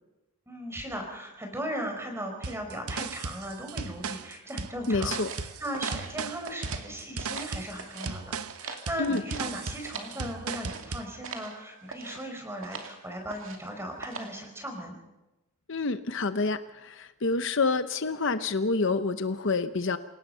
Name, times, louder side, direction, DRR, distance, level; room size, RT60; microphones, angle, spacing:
voice 1, 0.5-15.0, equal, 10° right, 3 dB, 4.5 m, -37 dB
sound 1, 2.4-11.1, right 4 dB, 85° right, 1.1 m, -36 dB
voice 2, 4.9-5.3 9.0-9.2 15.7-20.0, left 3 dB, 55° left, 11 dB, 0.8 m, -28 dB
sound 2, 5.0-6.9 7.1-8.1 8.4-10.2 10.5-10.9 11.2-11.5 11.9-12.2 12.6-12.9 13.3-13.7 14.0-14.4, right 4 dB, 60° right, 2.7 m, -41 dB
27.5 x 18.0 x 5.6 m, 1.0 s
head